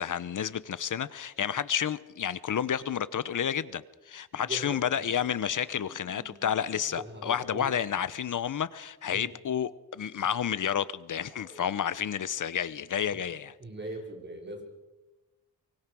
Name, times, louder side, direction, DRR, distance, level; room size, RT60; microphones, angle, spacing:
voice 1, 0.0-13.5, left 8 dB, 55° left, 0.9 m, -30 dB
voice 2, 4.4-5.1 6.9-7.8 9.1-9.3 13.1-13.3 13.6-14.6, right 2 dB, 30° right, 5.1 m, -41 dB
sound 1, 5.5-8.0 11.1-12.1, equal, 10° right, 7.9 m, -56 dB
24.5 x 23.5 x 6.2 m
wide cardioid pair, 130°, 36 cm